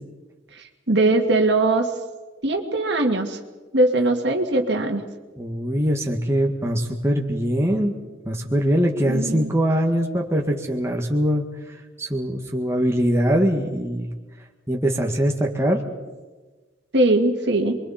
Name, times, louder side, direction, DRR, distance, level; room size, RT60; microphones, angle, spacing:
voice 1, 0.5-1.9 2.4-3.4 3.7-5.0 9.1-9.5 16.9-17.8, right 2 dB, 60° right, 3 dB, 2.1 m, -20 dB
voice 2, 5.4-7.9 8.2-14.1 14.7-15.8, equal, 15° right, 0 dB, 1.7 m, -22 dB
28.5 x 22.5 x 4.3 m, 1.3 s
head